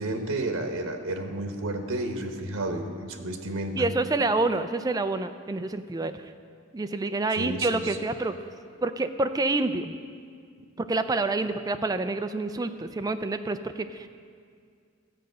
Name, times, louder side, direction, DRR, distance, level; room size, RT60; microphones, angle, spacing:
voice 1, 0.0-3.9 7.3-8.0, right 1 dB, 90° right, 4 dB, 1.0 m, -31 dB
voice 2, 3.8-6.3 6.7-8.3 8.8-9.9 10.8-14.1, right 2 dB, 20° right, 9 dB, 0.4 m, -27 dB
13.5 x 5.3 x 7.7 m, 2.2 s
head